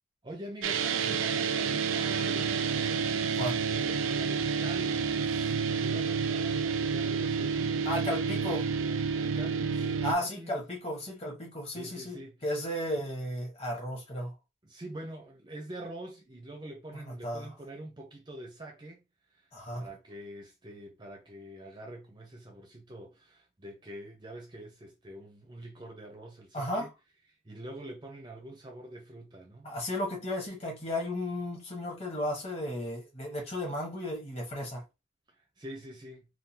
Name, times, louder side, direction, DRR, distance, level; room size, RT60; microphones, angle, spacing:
voice 1, 0.2-7.8 9.1-10.5 11.7-12.4 13.0-13.1 14.6-19.0 19.3-26.9 27.4-29.7 35.3-36.3, right 1 dB, 20° right, 0.6 m, -45 dB
sound 1, 0.6-10.1, right 6 dB, 70° right, 0.4 m, -29 dB
voice 2, 7.8-8.7 10.0-14.3 17.2-17.5 19.5-19.9 26.5-26.9 29.6-34.8, left 1 dB, 30° left, 1.2 m, -34 dB
3.7 x 2.3 x 2.8 m
head